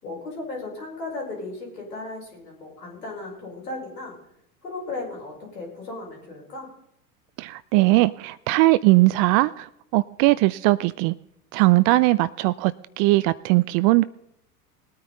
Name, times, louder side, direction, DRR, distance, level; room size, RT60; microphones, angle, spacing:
voice 1, 0.0-4.2 4.6-6.7, left 2 dB, 90° left, -2 dB, 4.9 m, -36 dB
voice 2, 7.4-9.7 9.9-11.1 11.5-14.0, right 20 dB, 45° right, 16 dB, 0.4 m, -19 dB
20.0 x 9.3 x 4.0 m, 0.78 s
hypercardioid pair, 80°, 47 cm